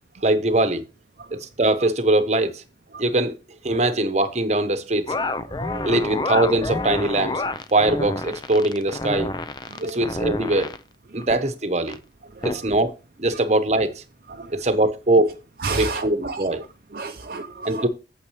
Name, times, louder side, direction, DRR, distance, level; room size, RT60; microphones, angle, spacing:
voice 1, 0.2-0.8 1.3-2.6 3.0-3.3 3.6-5.1 5.8-7.4 7.7-9.3 9.8-10.7 11.1-12.0 12.4-12.9 13.2-14.0 14.5-15.3 15.7-16.6 17.6-17.9, right 2 dB, 40° right, 1.0 m, -21 dB
sound 1, 5.1-10.8 11.2-11.4 11.9-12.0 12.4-12.6, left 2 dB, 25° left, 0.6 m, -28 dB
voice 2, 5.5-6.1 9.7-10.0 11.1-11.3 12.3-12.7 13.3-13.4 14.3-14.6 15.6-16.7 16.9-17.9, right 3 dB, 55° right, 0.7 m, -33 dB
8.6 x 7.8 x 3.2 m
head